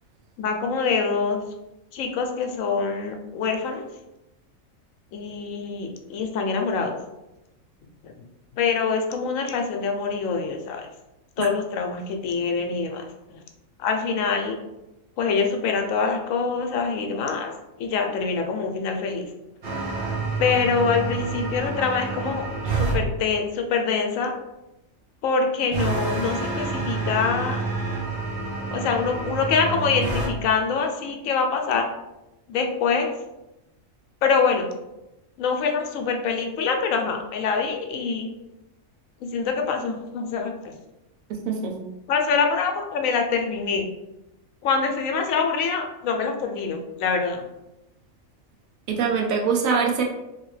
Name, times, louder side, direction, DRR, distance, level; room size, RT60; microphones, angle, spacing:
voice 1, 0.4-1.4 1.9-3.9 5.1-6.9 8.0-8.1 8.5-10.9 11.4-13.0 13.8-14.6 15.2-17.5 17.8-19.2 20.4-22.5 22.7-24.3 25.2-27.6 28.7-31.9 32.5-33.1 34.2-34.7 35.4-38.3 39.2-40.7 42.1-43.9 44.6-47.4, left 5 dB, 80° left, 3 dB, 1.0 m, -25 dB
sound 1, 19.6-23.0 25.7-30.3, right 3 dB, 50° right, 0.8 m, -28 dB
voice 2, 41.3-41.8 48.9-50.0, right 5 dB, 85° right, 1 dB, 1.1 m, -23 dB
3.3 x 2.8 x 3.1 m, 0.96 s
omnidirectional pair, 1.4 m